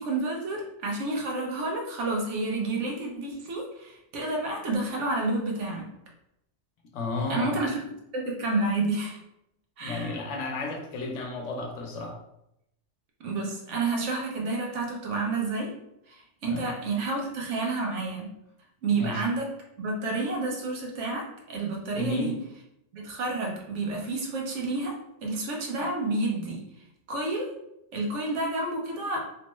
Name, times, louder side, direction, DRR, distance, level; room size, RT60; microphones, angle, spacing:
voice 1, 0.0-5.9 7.3-7.8 8.1-9.2 9.8-10.1 13.2-15.7 16.1-18.3 18.8-19.5 19.8-22.3 22.9-26.6 27.1-27.5 27.9-29.2, right 3 dB, 80° right, 0 dB, 1.1 m, -30 dB
voice 2, 6.9-7.6 9.8-12.2 16.5-16.7 18.9-19.2 21.9-22.4, left 3 dB, 80° left, 2 dB, 1.0 m, -32 dB
3.1 x 2.2 x 3.0 m, 0.80 s
omnidirectional pair, 1.2 m